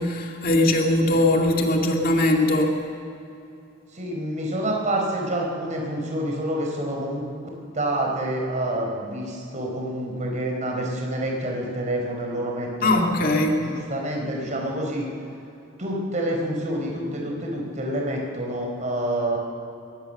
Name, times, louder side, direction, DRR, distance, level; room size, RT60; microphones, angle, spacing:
voice 1, 0.0-2.8 12.8-13.6, left 1 dB, 50° left, 2 dB, 2.3 m, -20 dB
voice 2, 3.9-7.2 7.7-15.1 15.8-19.4, right 1 dB, 40° right, 0 dB, 4.6 m, -28 dB
22.0 x 18.0 x 6.8 m, 2.7 s
head